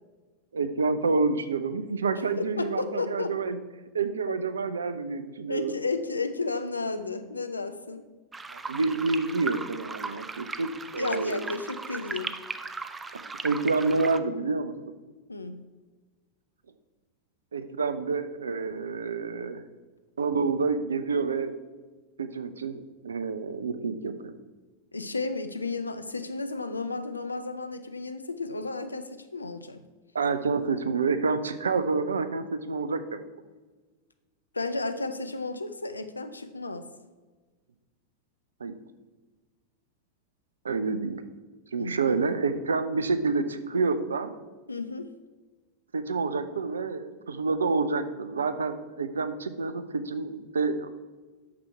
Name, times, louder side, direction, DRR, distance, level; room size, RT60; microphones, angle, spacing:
voice 1, 0.5-3.6 3.9-5.7 8.5-11.5 13.4-14.7 17.5-19.6 20.2-21.6 22.2-24.3 30.1-33.2 38.6-38.7 40.6-41.2 41.7-44.3 45.9-50.9, right 4 dB, 70° right, 11 dB, 0.6 m, -28 dB
voice 2, 2.6-3.3 5.5-8.1 11.0-12.3 15.3-15.6 24.9-29.8 34.5-36.9 41.8-42.2 44.7-45.1, left 3 dB, 80° left, 10 dB, 0.6 m, -33 dB
sound 1, 8.3-14.2, right 4 dB, 15° right, 0.4 m, -37 dB
8.6 x 6.0 x 4.5 m, 1.3 s
figure-of-eight pair, 90°, 0 cm